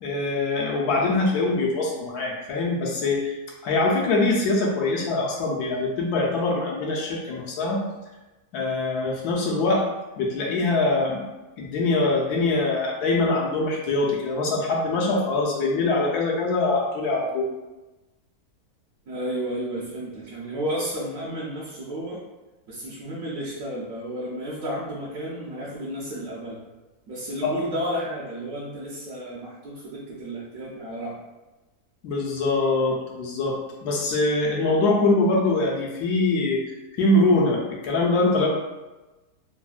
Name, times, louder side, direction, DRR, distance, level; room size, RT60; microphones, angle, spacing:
voice 1, 0.0-3.3 3.6-7.8 8.5-9.9 10.2-11.2 11.6-17.5 27.4-27.5 32.0-36.6 37.0-38.5, left 2 dB, 75° left, -2 dB, 1.1 m, -23 dB
voice 2, 19.1-22.2 22.7-26.6 27.1-31.2, equal, 70° right, -7 dB, 1.0 m, -32 dB
3.3 x 2.1 x 2.3 m, 1.1 s
omnidirectional pair, 1.7 m